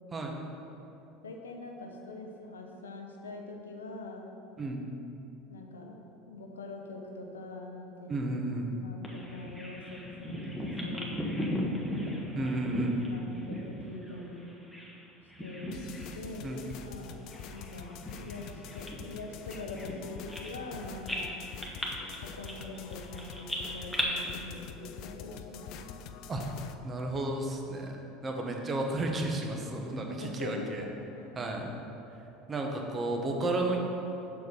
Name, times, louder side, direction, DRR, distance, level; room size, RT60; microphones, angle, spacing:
voice 1, 1.2-4.3 5.5-6.0 6.3-8.1 8.8-11.4 12.3-12.5 13.1-14.4 15.4-15.8 16.1-17.1 17.5-21.4 22.3-26.0 30.2-31.3, left 2 dB, 90° left, 2 dB, 0.7 m, -43 dB
voice 2, 8.1-8.7 12.3-13.2 16.4-16.7 26.3-26.4 26.8-28.0 28.2-30.8 31.4-31.7 32.5-33.8, right 2 dB, 30° right, 1 dB, 1.1 m, -32 dB
Bird vocalization bird call bird song, 9.0-15.0 15.3-16.2 16.5-16.7 17.3-20.7 21.1-24.0, equal, ahead, 1.2 m, -37 dB
sound 1, 15.7-26.7, left 6 dB, 60° left, 0.4 m, -45 dB
6.4 x 4.6 x 5.5 m, 2.9 s
hypercardioid pair, 75°, 0 cm